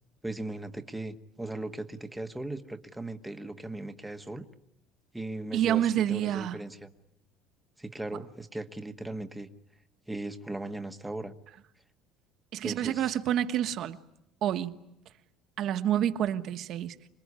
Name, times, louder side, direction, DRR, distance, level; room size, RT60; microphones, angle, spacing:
voice 1, 0.2-4.4 5.1-6.9 7.8-9.5 10.1-11.3 12.6-13.2, right 2 dB, 5° right, 1.3 m, -38 dB
voice 2, 5.5-6.6 12.5-14.0 14.4-14.8 15.6-17.0, right 11 dB, 45° right, 1.3 m, -28 dB
27.0 x 21.5 x 9.7 m
cardioid pair, 155°, 0 cm